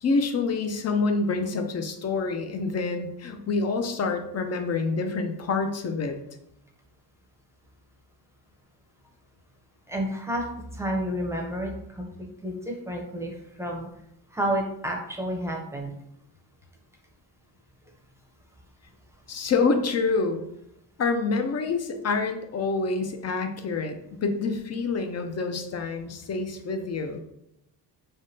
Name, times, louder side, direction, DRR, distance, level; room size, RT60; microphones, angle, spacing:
voice 1, 0.0-6.2 19.3-20.4 21.0-23.9 24.2-27.2, left 4 dB, 40° left, 6 dB, 0.5 m, -27 dB
voice 2, 9.9-10.4 10.7-13.9 14.3-15.9, right 1 dB, 5° right, 0 dB, 0.6 m, -30 dB
3.3 x 2.1 x 2.7 m, 0.80 s
cardioid pair, 80°, 42 cm